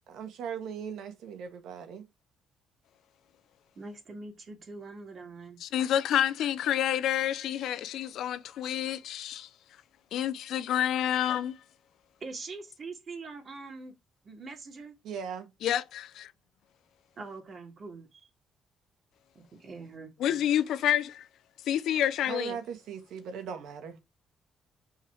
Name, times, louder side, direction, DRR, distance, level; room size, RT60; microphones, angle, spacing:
voice 1, 0.1-2.0 15.0-15.5 22.3-24.0, right 7 dB, 80° right, 1.9 m, -38 dB
voice 2, 3.8-5.6 12.2-13.9 14.2-14.9 17.2-18.3 19.3-20.1, right 3 dB, 45° right, 2.8 m, -43 dB
voice 3, 5.6-9.5 10.1-11.6 15.6-16.3 20.2-21.3 21.7-22.6, left 10 dB, 80° left, 0.7 m, -28 dB
6.1 x 4.7 x 4.8 m
cardioid pair, 90°, 0 cm